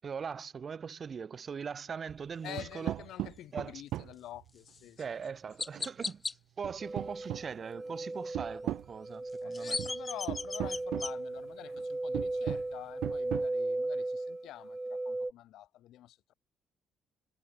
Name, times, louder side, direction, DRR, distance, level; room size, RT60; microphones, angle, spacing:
voice 1, 0.0-3.0 3.5-3.7 5.0-9.8, right 6 dB, 40° right, 7.5 m, -40 dB
sound 1, 2.1-2.2 2.6-4.5 5.7-6.1 6.6-7.9 8.3-8.9 9.8-10.0 10.3-11.1 11.7-11.8 12.1-12.7 13.0-13.5, right 14 dB, 80° right, 1.2 m, -37 dB
voice 2, 2.4-5.0 9.4-16.3, left 13 dB, 75° left, 6.7 m, -47 dB
Chirp tweet, 4.7-4.8 5.6-6.3 9.3-11.1, left 4 dB, 25° left, 1.8 m, -37 dB
sound 2, 6.8-15.3, right 2 dB, 15° right, 1.6 m, -37 dB
cardioid pair, 100°, 0 cm